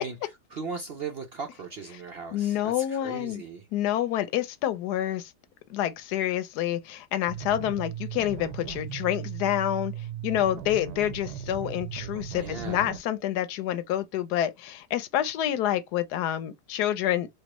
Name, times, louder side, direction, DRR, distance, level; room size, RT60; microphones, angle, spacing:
voice 1, 0.0-3.7 12.4-13.0, right 4 dB, 60° right, 0.6 m, -38 dB
voice 2, 2.3-3.4 3.7-5.3 5.7-9.9 10.2-17.3, left 12 dB, 90° left, 1.2 m, -28 dB
sound 1, 7.3-13.0, right 9 dB, 85° right, 1.2 m, -37 dB
4.4 x 2.3 x 3.0 m
omnidirectional pair, 1.7 m